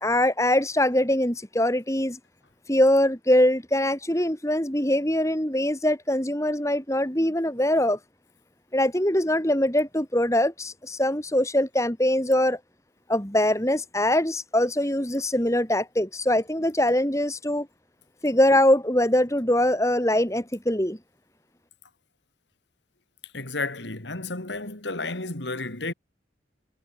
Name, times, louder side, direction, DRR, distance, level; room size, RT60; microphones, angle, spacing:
voice 1, 0.0-2.2 2.7-8.0 8.7-12.6 13.1-17.7 18.2-21.0, left 1 dB, 15° left, 2.6 m, -23 dB
voice 2, 23.3-25.9, left 3 dB, 75° left, 3.0 m, -32 dB
head